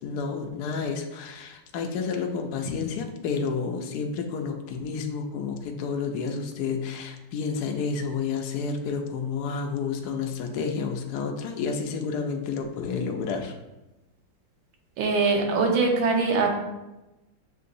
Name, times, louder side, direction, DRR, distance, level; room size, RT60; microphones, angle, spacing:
voice 1, 0.0-13.5, left 5 dB, 70° left, 3 dB, 1.0 m, -30 dB
voice 2, 15.0-16.5, right 4 dB, 85° right, 2 dB, 1.5 m, -22 dB
7.1 x 2.8 x 2.6 m, 1.0 s
omnidirectional pair, 2.0 m